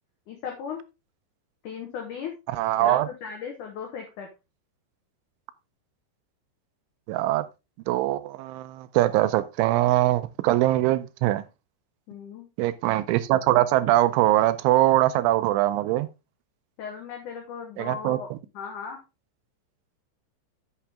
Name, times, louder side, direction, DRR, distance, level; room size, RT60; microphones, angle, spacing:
voice 1, 0.3-0.8 1.6-2.3 2.8-4.3 12.1-12.5 16.8-18.3 18.5-19.0, left 6 dB, 75° left, 1.8 m, -36 dB
voice 2, 2.5-3.1 7.1-7.5 7.9-11.4 12.6-16.1 17.8-18.4, right 15 dB, 85° right, 3.1 m, -22 dB
8.7 x 7.0 x 3.4 m
omnidirectional pair, 5.4 m